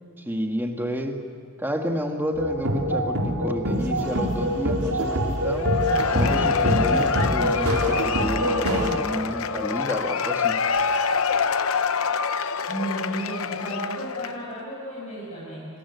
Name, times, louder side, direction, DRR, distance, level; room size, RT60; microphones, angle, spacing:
voice 1, 0.3-1.2 1.6-5.7 6.1-10.6, equal, 10° right, 3 dB, 1.9 m, -30 dB
sound 1, 2.4-9.0, equal, 85° right, 3.9 m, -24 dB
Cheering / Applause / Crowd, 5.6-14.5, left 6 dB, 70° left, 0.8 m, -26 dB
voice 2, 12.7-15.7, right 1 dB, 35° left, -7 dB, 6.8 m, -33 dB
28.5 x 21.0 x 8.3 m, 2.5 s
head